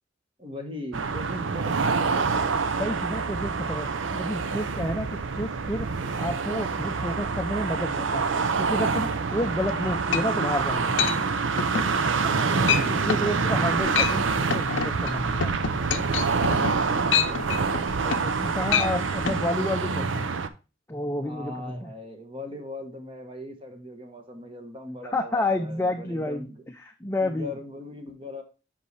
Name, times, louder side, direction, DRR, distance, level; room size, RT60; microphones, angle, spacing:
voice 1, 0.4-2.6 9.3-9.7 11.7-13.3 16.7-17.7 21.2-26.6 27.2-28.4, left 1 dB, 30° right, 4 dB, 1.3 m, -39 dB
sound 1, 0.9-20.5, right 4 dB, 90° right, 0.7 m, -26 dB
voice 2, 2.8-5.9 6.2-8.2 8.6-11.0 12.6-15.6 18.0-20.3 20.9-21.9 25.1-27.6, left 1 dB, 15° left, 4 dB, 0.5 m, -30 dB
sound 2, 9.4-19.2, right 2 dB, 75° right, 1.4 m, -47 dB
sound 3, 9.7-9.8 10.1-10.5 11.0-11.2 11.6-11.9 12.3-12.4 12.7-12.8 13.1-13.3 13.8-14.2 14.5-18.4 18.7-18.9 19.3-19.4, left 7 dB, 80° left, 0.6 m, -26 dB
8.0 x 5.4 x 3.2 m, 0.32 s
head